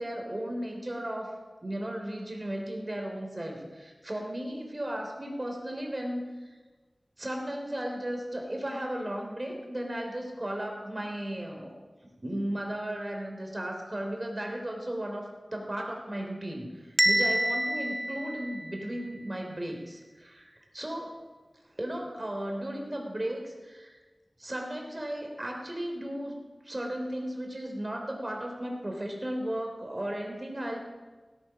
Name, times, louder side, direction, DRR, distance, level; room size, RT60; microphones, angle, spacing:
voice 1, 0.0-1.4 1.6-6.5 7.2-11.7 12.2-21.1 21.8-23.9 24.4-26.4 26.6-30.8, right 1 dB, 40° right, 2 dB, 3.6 m, -35 dB
Bell, 17.0-19.0, right 1 dB, 15° right, 0.5 m, -27 dB
16.5 x 9.1 x 6.1 m, 1.3 s
wide cardioid pair, 40°, 0 cm